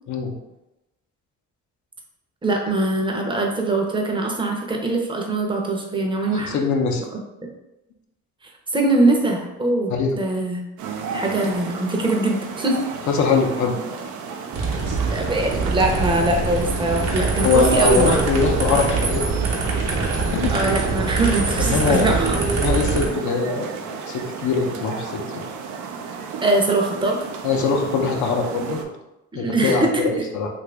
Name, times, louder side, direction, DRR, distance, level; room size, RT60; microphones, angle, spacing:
voice 1, 2.4-6.6 8.7-10.6 11.1-12.8 15.1-18.2 20.5-22.4 26.4-27.2 29.3-30.1, right 2 dB, 15° right, 1 dB, 0.6 m, -22 dB
voice 2, 6.3-7.0 9.9-10.1 13.1-13.7 17.4-19.3 20.3-20.5 21.6-22.2 22.6-23.7 24.1-25.4 27.4-28.8 29.3-30.5, left 4 dB, 70° left, 1 dB, 0.6 m, -22 dB
sound 1, 10.8-28.8, right 5 dB, 75° right, 0.5 m, -33 dB
sound 2, 14.5-23.1, right 4 dB, 55° right, 0.8 m, -23 dB
2.8 x 2.5 x 3.3 m, 0.94 s
cardioid pair, 90°, 30 cm